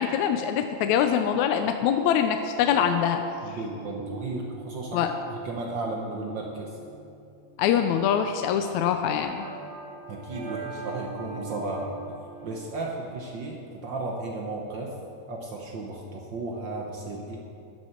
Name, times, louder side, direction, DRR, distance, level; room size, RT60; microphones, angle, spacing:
voice 1, 0.0-3.2 4.9-5.1 7.6-9.5, left 8 dB, 80° left, 7 dB, 1.8 m, -24 dB
sound 1, 2.7-12.7, right 4 dB, 25° right, 0.6 m, -42 dB
voice 2, 3.4-5.0 5.4-6.8 10.1-12.0 12.4-14.9 15.3-17.4, right 2 dB, 85° right, 0 dB, 1.0 m, -34 dB
13.0 x 11.0 x 4.5 m, 2.5 s
omnidirectional pair, 3.5 m